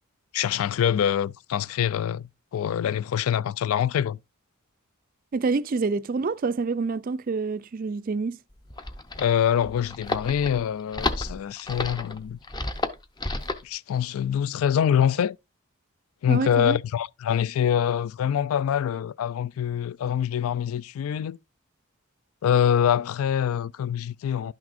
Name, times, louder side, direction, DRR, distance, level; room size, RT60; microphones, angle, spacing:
voice 1, 0.3-4.2 9.2-12.4 13.6-15.4 16.2-21.4 22.4-24.5, left 9 dB, 75° left, 0.3 m, -25 dB
voice 2, 5.3-8.4 16.3-16.8, right 4 dB, 40° right, 0.3 m, -27 dB
sound 1, 8.5-13.7, left 2 dB, 20° left, 0.6 m, -31 dB
11.5 x 6.0 x 2.5 m
head